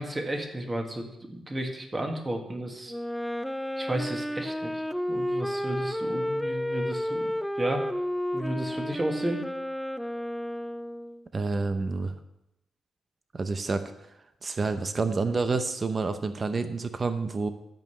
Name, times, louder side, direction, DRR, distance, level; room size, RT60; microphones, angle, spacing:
voice 1, 0.0-2.9 3.8-7.9 8.3-9.4, right 1 dB, 20° right, 3 dB, 1.7 m, -33 dB
Wind instrument woodwind instrument, 2.9-11.3, equal, ahead, 0.4 m, -31 dB
voice 2, 11.3-12.1 13.3-13.8 14.4-17.5, right 4 dB, 35° right, 9 dB, 0.7 m, -28 dB
12.0 x 5.4 x 7.1 m, 0.88 s
cardioid pair, 95°, 0 cm